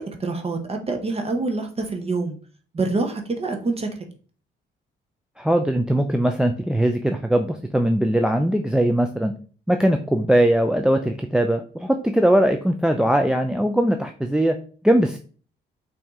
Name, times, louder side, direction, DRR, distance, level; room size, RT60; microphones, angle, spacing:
voice 1, 0.0-2.4 2.7-3.9, right 3 dB, 30° right, 4 dB, 0.8 m, -26 dB
voice 2, 5.4-9.3 9.7-14.6 14.8-15.2, right 1 dB, 5° right, 6 dB, 0.3 m, -20 dB
5.6 x 2.7 x 3.5 m, 0.40 s
cardioid pair, 90°, 20 cm